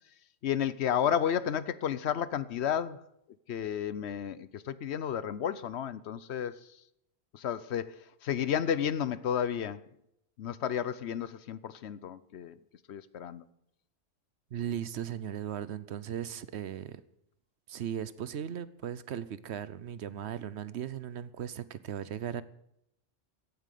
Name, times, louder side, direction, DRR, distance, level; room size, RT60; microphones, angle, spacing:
voice 1, 0.4-3.1 3.5-6.5 7.3-9.8 10.4-12.6 12.9-13.4, left 9 dB, 65° left, 0.9 m, -32 dB
voice 2, 14.5-17.0 17.7-22.4, right 9 dB, 70° right, 1.0 m, -37 dB
16.0 x 9.1 x 6.6 m
omnidirectional pair, 1.2 m